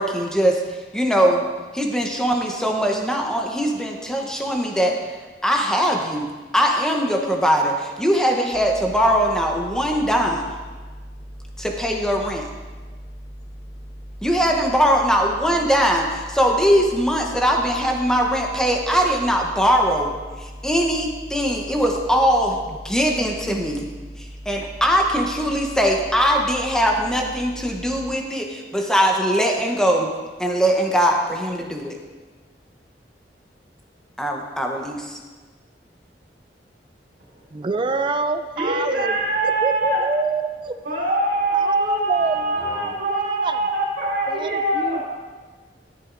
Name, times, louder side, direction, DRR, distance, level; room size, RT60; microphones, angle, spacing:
voice 1, 0.0-1.4 1.7-5.0 5.4-10.4 11.6-12.5 14.2-23.9 24.2-30.1 30.4-32.0 34.2-35.2, equal, 5° left, 1 dB, 0.8 m, -21 dB
sound 1, 8.5-28.2, equal, 35° left, 1.2 m, -39 dB
voice 2, 37.5-39.1 39.4-40.7 41.5-43.6 44.3-45.0, right 3 dB, 25° right, 9 dB, 0.4 m, -26 dB
voice 3, 38.6-40.0 40.8-45.0, right 2 dB, 65° right, -5 dB, 2.9 m, -23 dB
13.0 x 7.6 x 2.6 m, 1.4 s
head